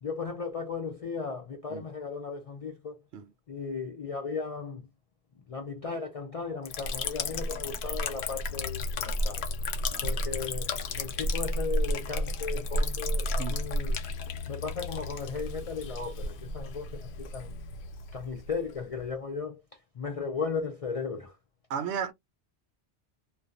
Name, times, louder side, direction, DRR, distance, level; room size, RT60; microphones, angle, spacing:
voice 1, 0.0-3.0 3.5-4.9 5.5-9.5 10.0-14.0 14.5-17.6 18.1-19.6 19.9-21.4, left 5 dB, 60° left, 0.4 m, -36 dB
Liquid, 6.7-19.1, left 1 dB, 75° left, 0.8 m, -32 dB
voice 2, 13.4-13.7 21.7-22.1, right 7 dB, 85° right, 0.9 m, -34 dB
2.4 x 2.2 x 2.5 m
omnidirectional pair, 1.1 m